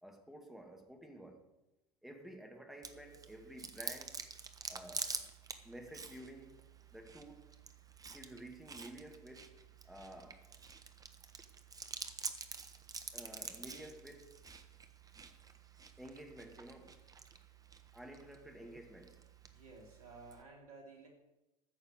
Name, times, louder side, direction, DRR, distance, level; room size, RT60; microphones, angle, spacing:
voice 1, 0.0-1.4 2.0-4.2 4.7-5.1 5.6-6.6 6.9-7.4 8.1-9.5 9.8-10.5 13.1-14.4 16.0-17.0 17.9-19.2, right 1 dB, ahead, 2.4 m, -52 dB
Chewing mastication, 2.8-20.4, right 5 dB, 20° right, 1.2 m, -48 dB
voice 2, 19.5-21.1, right 3 dB, 75° right, 3.8 m, -54 dB
14.0 x 6.6 x 8.1 m
figure-of-eight pair, 80°, 19 cm